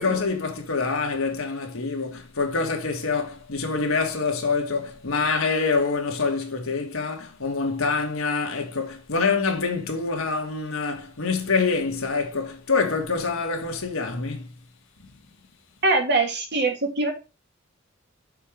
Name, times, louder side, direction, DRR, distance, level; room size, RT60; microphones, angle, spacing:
voice 1, 0.0-14.5, left 4 dB, 75° left, 1.8 m, -26 dB
voice 2, 15.8-17.1, right 3 dB, 55° right, 1.9 m, -23 dB
6.7 x 4.6 x 5.1 m
head